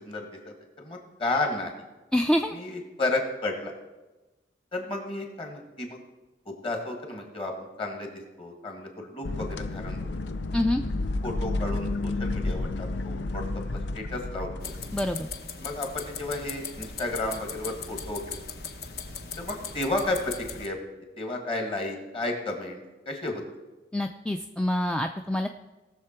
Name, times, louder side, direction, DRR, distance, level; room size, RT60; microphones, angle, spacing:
voice 1, 0.0-1.7 2.5-3.8 4.7-6.0 6.5-7.5 7.8-8.1 8.4-10.0 11.2-13.4 13.7-14.7 15.6-18.4 19.4-20.8 21.2-23.4, left 2 dB, 30° left, 2 dB, 1.8 m, -32 dB
voice 2, 2.1-2.6 10.5-10.8 14.9-15.3 23.9-25.5, left 1 dB, 5° left, 5 dB, 0.3 m, -26 dB
sound 1, 9.2-15.4, left 2 dB, 85° left, 0.6 m, -31 dB
sound 2, 14.6-20.7, left 5 dB, 60° left, 0.9 m, -39 dB
18.5 x 6.7 x 4.4 m, 1.1 s
head